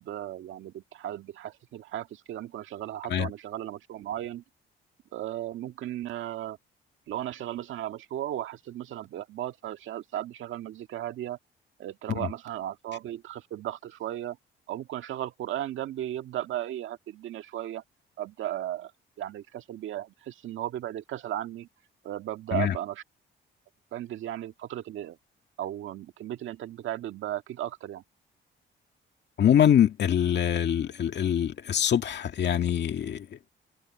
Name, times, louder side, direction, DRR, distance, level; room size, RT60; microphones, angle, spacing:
voice 1, 0.0-4.4 5.1-6.6 7.1-11.4 11.8-14.4 14.7-17.8 18.2-18.9 19.2-21.7 22.0-23.0 23.9-25.2 25.6-28.0, right 12 dB, 80° right, 1.8 m, -35 dB
voice 2, 29.4-33.3, left 9 dB, 60° left, 2.0 m, -24 dB
cardioid pair, 90°, 20 cm